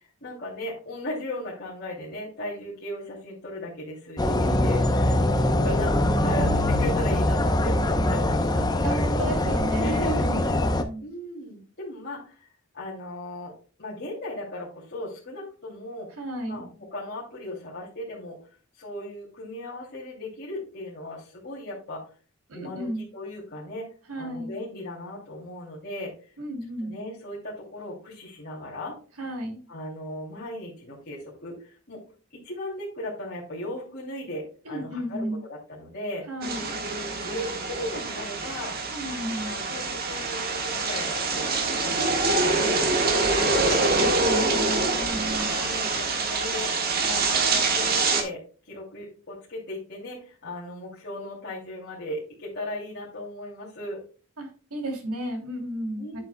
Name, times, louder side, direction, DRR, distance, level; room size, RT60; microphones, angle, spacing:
voice 1, 0.2-5.2 5.6-9.2 9.8-12.5 12.7-13.5 13.8-16.1 16.5-18.4 18.7-22.1 22.5-23.9 24.1-26.3 26.8-28.9 29.7-32.0 32.3-35.2 35.5-36.2 37.2-38.7 39.4-43.8 45.2-54.0 56.0-56.2, left 1 dB, 45° left, -6 dB, 2.6 m, -37 dB
sound 1, 4.2-10.8, left 1 dB, 20° left, 0.6 m, -23 dB
voice 2, 4.2-4.7 8.8-11.0 16.1-16.6 22.5-23.1 24.1-24.5 26.4-26.9 29.2-29.6 34.6-35.4 36.3-36.7 38.9-39.5 44.0-45.5 54.4-56.2, right 1 dB, 90° right, 4 dB, 2.8 m, -33 dB
sound 2, 36.4-48.2, right 3 dB, 40° right, 1.5 m, -25 dB
9.5 x 8.3 x 2.2 m, 0.38 s
head